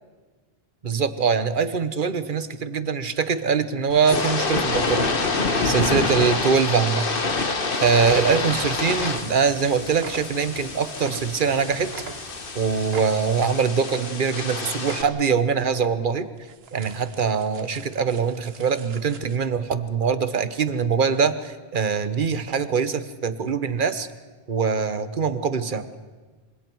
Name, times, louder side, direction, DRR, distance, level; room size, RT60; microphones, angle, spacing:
voice 1, 0.8-5.1 5.6-7.1 7.8-11.9 12.5-16.3 16.7-24.1 24.5-25.9, right 6 dB, 55° right, 12 dB, 1.2 m, -23 dB
sound 1, 3.9-15.0, left 3 dB, 60° left, 1.6 m, -27 dB
sound 2, 6.9-7.6 7.9-8.7 8.9-11.6 11.9-12.6 12.9-13.5 13.8-14.4 14.8-15.4 15.7-15.9 16.4-19.4, right 6 dB, 80° right, 1.3 m, -41 dB
sound 3, 7.7-13.6, right 1 dB, 35° right, 3.5 m, -48 dB
26.5 x 25.5 x 4.6 m, 1.4 s
omnidirectional pair, 1.0 m